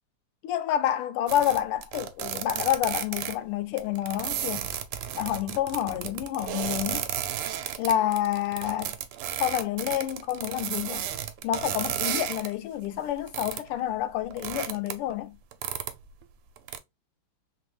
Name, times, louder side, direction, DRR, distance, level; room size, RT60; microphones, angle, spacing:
voice 1, 0.4-4.7 5.1-7.0 7.8-8.9 9.4-11.0 11.4-15.3, left 12 dB, 85° left, 1.5 m, -28 dB
sound 1, 1.3-3.3 3.8-12.5 12.8-13.7 14.0-15.1 15.5-16.2 16.6-16.8, right 10 dB, 80° right, 1.5 m, -33 dB
3.7 x 3.0 x 3.0 m
omnidirectional pair, 2.4 m